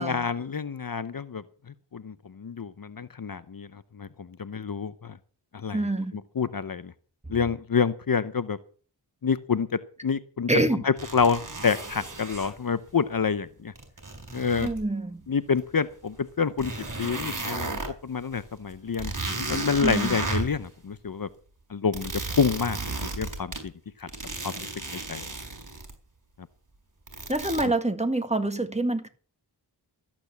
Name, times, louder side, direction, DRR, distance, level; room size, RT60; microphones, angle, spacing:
voice 1, 0.0-1.4 1.9-5.2 5.5-6.9 7.3-8.6 9.2-9.7 10.0-10.5 10.8-13.7 14.3-14.7 15.3-16.7 17.0-19.1 19.4-21.3 21.7-23.7 24.0-24.1 24.4-24.7 25.1-25.3, left 6 dB, 55° left, 0.7 m, -28 dB
voice 2, 5.7-6.1 10.5-10.8 14.6-15.2 19.8-20.1 27.3-29.1, right 2 dB, 15° right, 1.7 m, -26 dB
sound 1, 11.0-12.5 13.8-14.8 15.6-15.7 16.2-16.3 16.6-17.9 18.4-18.5 18.7-20.7 21.9-23.6 24.1-25.9 27.1-27.6, right 3 dB, 50° right, 4.5 m, -34 dB
13.5 x 8.8 x 6.9 m
wide cardioid pair, 50°, 42 cm